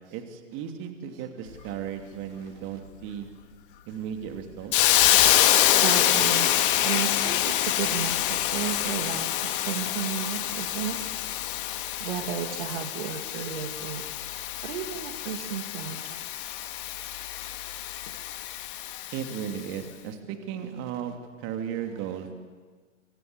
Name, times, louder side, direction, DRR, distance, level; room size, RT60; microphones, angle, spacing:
voice 1, 0.1-3.3 3.9-4.7 19.1-22.3, right 8 dB, 30° right, 6 dB, 2.9 m, -35 dB
Hiss, 4.7-19.5, left 13 dB, 45° left, 2.1 m, -26 dB
voice 2, 5.8-11.0 12.0-16.2, right 8 dB, 50° right, 5 dB, 2.6 m, -34 dB
26.5 x 24.0 x 8.1 m, 1.5 s
figure-of-eight pair, 120°, 37 cm